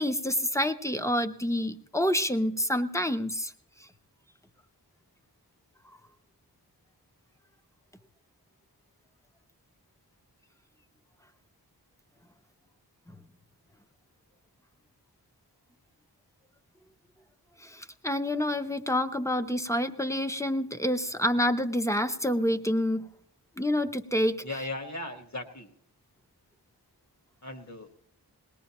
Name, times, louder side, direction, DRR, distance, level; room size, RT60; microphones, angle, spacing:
voice 1, 0.0-3.5 17.6-23.1 23.6-24.4, left 1 dB, 5° left, 8 dB, 0.7 m, -28 dB
voice 2, 24.4-25.7 27.4-28.0, left 2 dB, 45° left, 5 dB, 1.5 m, -37 dB
21.0 x 18.5 x 3.0 m, 0.66 s
wide cardioid pair, 55°, 40 cm